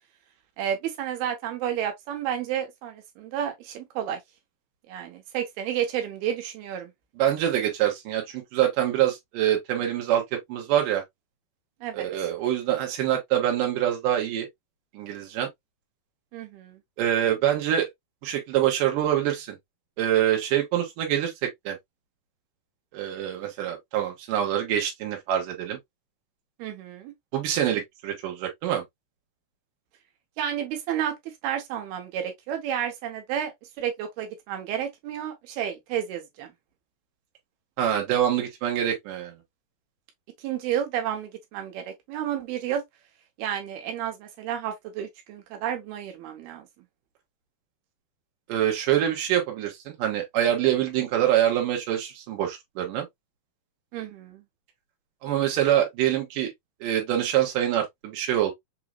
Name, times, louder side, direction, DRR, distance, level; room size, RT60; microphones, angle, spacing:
voice 1, 0.6-4.2 4.9-6.9 11.8-12.1 16.3-16.8 26.6-27.1 30.4-31.1 31.4-36.5 40.4-42.8 43.4-46.7 53.9-54.4, right 10 dB, 90° right, 2.9 m, -31 dB
voice 2, 7.2-11.0 11.9-14.5 14.9-15.5 17.0-17.9 18.2-19.6 20.0-21.8 22.9-25.8 27.3-28.8 37.8-39.3 48.5-53.1 55.2-56.5 56.8-58.5, right 11 dB, 70° right, 2.8 m, -25 dB
6.2 x 2.9 x 2.3 m
omnidirectional pair, 4.3 m